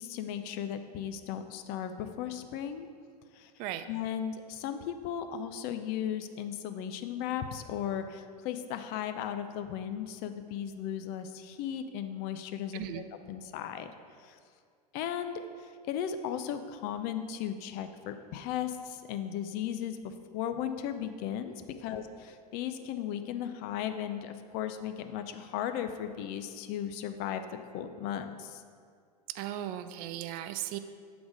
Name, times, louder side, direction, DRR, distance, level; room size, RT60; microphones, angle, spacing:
voice 1, 0.0-2.9 3.3-3.5 3.9-13.9 14.2-14.4 14.9-27.5 27.7-28.6, left 9 dB, 50° left, 9 dB, 0.6 m, -36 dB
voice 2, 12.7-13.0 29.3-30.8, right 12 dB, 45° right, 11 dB, 0.4 m, -37 dB
7.7 x 4.0 x 4.8 m, 2.1 s
hypercardioid pair, 110°, 21 cm